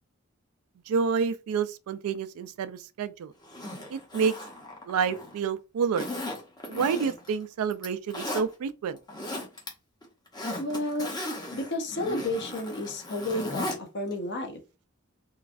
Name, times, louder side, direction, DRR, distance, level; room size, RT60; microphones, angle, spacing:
voice 1, 0.9-3.3 3.9-4.3 4.8-6.1 6.7-9.0, right 6 dB, 85° right, 0.3 m, -28 dB
Zipper (clothing), 3.4-5.4 5.9-7.3 7.7-8.4 8.9-9.7 10.0-13.8 14.1-14.2, left 1 dB, 20° left, 0.7 m, -36 dB
voice 2, 10.6-11.1 11.5-14.6, left 1 dB, 55° left, 0.7 m, -31 dB
3.1 x 2.3 x 2.4 m
head